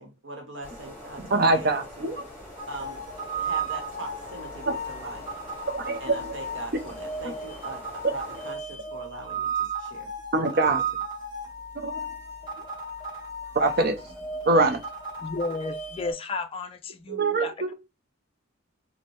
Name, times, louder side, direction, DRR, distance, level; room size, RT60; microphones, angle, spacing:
voice 1, 0.0-2.1 2.7-3.0 3.3-5.2 6.0-7.8 8.1-10.1 10.5-10.6, right 2 dB, 70° right, 1.0 m, -41 dB
sound 1, 0.6-8.5, left 1 dB, 10° left, 2.3 m, -44 dB
voice 2, 1.3-2.2 4.7-4.8 5.7-6.3 10.3-10.8 11.7-12.0 13.5-14.0 14.5-14.8 17.1-17.7, right 2 dB, 50° right, 0.6 m, -23 dB
sound 2, 2.6-16.1, right 3 dB, 20° right, 1.5 m, -35 dB
voice 3, 15.2-17.7, left 3 dB, 30° left, 0.3 m, -33 dB
4.3 x 2.1 x 3.1 m
head